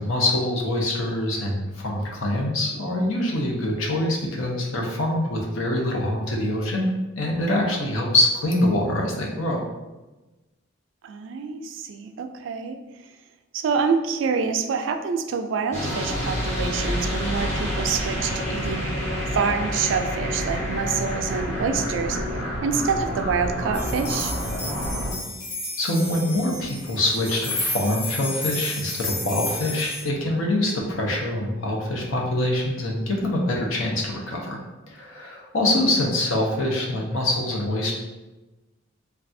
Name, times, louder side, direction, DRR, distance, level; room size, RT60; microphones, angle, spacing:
voice 1, 0.0-9.6 25.8-34.6 34.9-37.9, left 1 dB, 80° left, 0 dB, 0.6 m, -24 dB
voice 2, 11.0-12.8 13.5-18.9 19.3-22.2 22.6-24.3, right 5 dB, 65° right, 6 dB, 0.3 m, -26 dB
sound 1, 15.7-25.1, equal, 15° left, 0.8 m, -28 dB
sound 2, 23.7-30.0, left 2 dB, 45° left, 1.0 m, -32 dB
3.2 x 2.3 x 2.6 m, 1.1 s
head